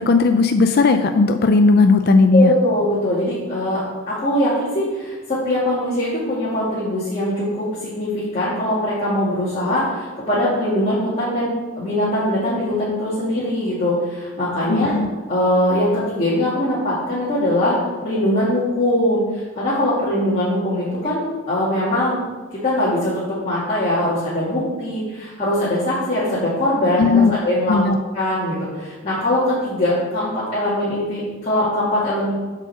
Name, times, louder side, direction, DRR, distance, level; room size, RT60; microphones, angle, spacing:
voice 1, 0.0-2.5 14.7-15.1 27.0-27.3 27.7-28.0, left 3 dB, 50° left, 7 dB, 0.4 m, -15 dB
voice 2, 2.3-14.9 15.3-22.2 22.5-27.8 28.1-32.3, left 1 dB, 30° left, -10 dB, 2.3 m, -21 dB
7.6 x 5.2 x 6.5 m, 1.3 s
head